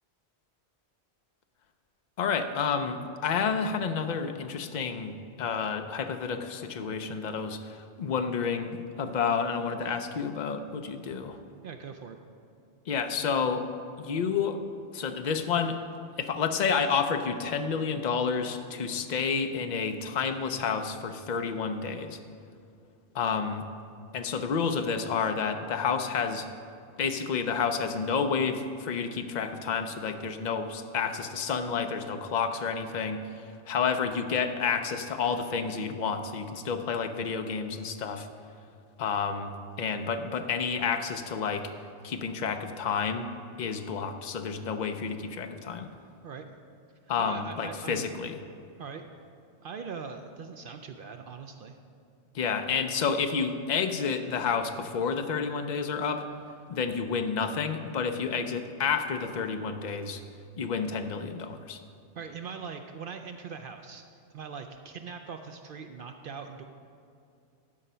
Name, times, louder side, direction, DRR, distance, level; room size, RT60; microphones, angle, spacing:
voice 1, 2.2-11.4 12.9-13.7 14.0-14.6 14.9-15.8 16.2-22.2 23.1-23.7 24.1-26.5 27.0-38.3 39.0-41.7 42.0-43.3 43.6-45.9 47.1-48.4 52.3-56.2 56.7-60.2 60.6-61.8, left 6 dB, 50° left, 7 dB, 0.6 m, -30 dB
voice 2, 11.6-12.2 46.2-46.4 47.2-48.1 48.8-49.1 49.6-51.8 62.2-64.0 64.3-66.6, right 5 dB, 60° right, 6 dB, 0.6 m, -41 dB
12.5 x 5.1 x 5.6 m, 2.5 s
omnidirectional pair, 1.1 m